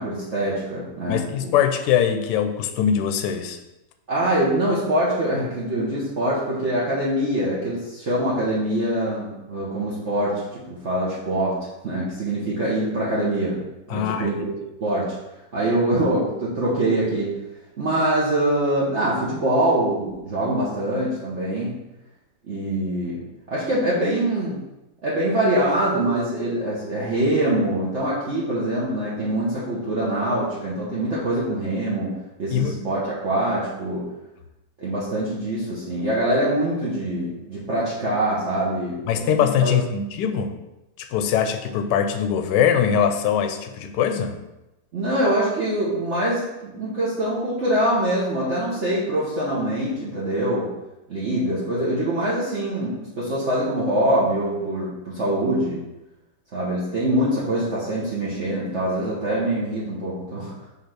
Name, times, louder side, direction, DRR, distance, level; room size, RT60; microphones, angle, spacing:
voice 1, 0.0-1.5 4.1-11.6 11.8-13.5 13.9-15.1 15.5-17.3 17.8-21.7 22.5-23.2 23.5-24.6 25.0-32.1 32.4-34.0 34.8-39.7 44.9-50.7 51.1-55.8 56.5-60.7, right 1 dB, 45° right, -8 dB, 1.4 m, -24 dB
voice 2, 1.1-3.6 13.9-14.3 32.5-32.8 39.1-40.5 41.0-44.4, left 8 dB, 75° left, 7 dB, 1.2 m, -22 dB
5.7 x 3.4 x 5.8 m, 0.97 s
omnidirectional pair, 2.0 m